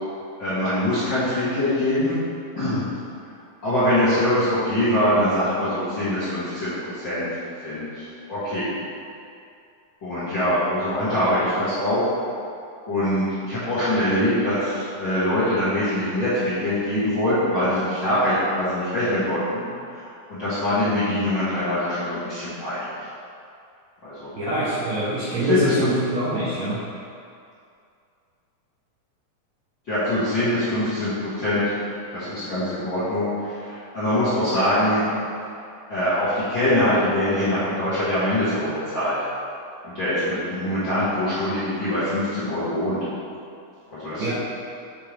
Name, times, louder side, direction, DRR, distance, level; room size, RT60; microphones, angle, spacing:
voice 1, 0.4-2.2 2.5-2.8 3.6-7.3 7.6-8.7 10.0-12.0 12.9-19.6 19.9-22.9 24.0-24.3 25.4-25.7 29.9-31.8 32.1-35.1 35.9-39.1 39.8-43.0 44.0-44.3, left 1 dB, 45° left, -15 dB, 1.6 m, -23 dB
voice 2, 24.4-26.8 44.2-44.3, right 1 dB, 65° right, -11 dB, 1.8 m, -25 dB
7.9 x 4.4 x 3.5 m, 2.5 s
omnidirectional pair, 4.3 m